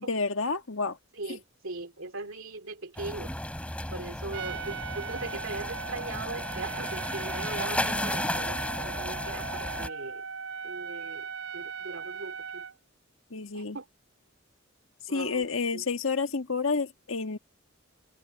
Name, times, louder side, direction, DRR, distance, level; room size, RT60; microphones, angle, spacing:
voice 1, 0.1-1.0 1.3-1.4 13.3-13.8 15.0-17.4, left 4 dB, 65° left, 1.7 m, -30 dB
voice 2, 1.1-3.3 3.9-10.2 10.6-12.6 13.5-13.8 15.1-15.8, right 2 dB, 70° right, 3.0 m, -40 dB
sound 1, 3.0-9.9, left 1 dB, 5° left, 3.4 m, -34 dB
Trumpet, 4.3-12.7, right 6 dB, 85° right, 3.3 m, -39 dB
open air
head